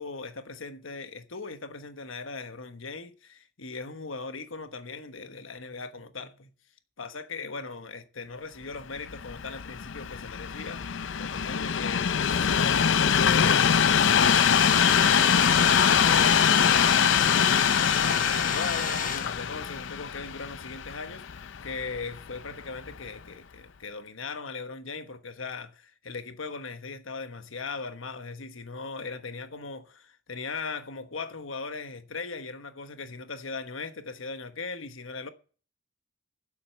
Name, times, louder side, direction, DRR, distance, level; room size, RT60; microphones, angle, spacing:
voice 1, 0.0-6.5 7.0-35.3, left 4 dB, 85° left, 1.3 m, -39 dB
Train, 9.0-22.2 22.9-23.0, left 7 dB, 70° left, 0.5 m, -23 dB
Domestic sounds home sounds, 14.0-19.8, left 6 dB, 40° left, 0.9 m, -31 dB
8.8 x 7.9 x 8.1 m
head